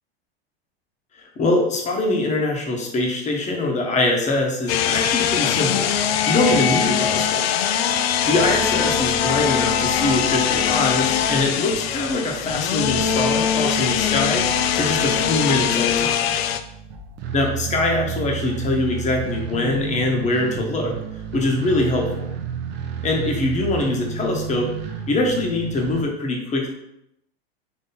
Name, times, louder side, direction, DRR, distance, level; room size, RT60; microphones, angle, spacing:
voice 1, 1.4-7.4 8.3-16.2 17.3-20.9 21.3-22.3 23.0-24.7 25.1-26.7, left 2 dB, 25° left, 0 dB, 1.1 m, -23 dB
sound 1, 4.7-16.6, left 8 dB, 70° left, 0.5 m, -22 dB
sound 2, 8.4-26.0, right 6 dB, 35° right, 0.7 m, -33 dB
4.2 x 3.0 x 4.0 m, 0.81 s
hypercardioid pair, 115°, 31 cm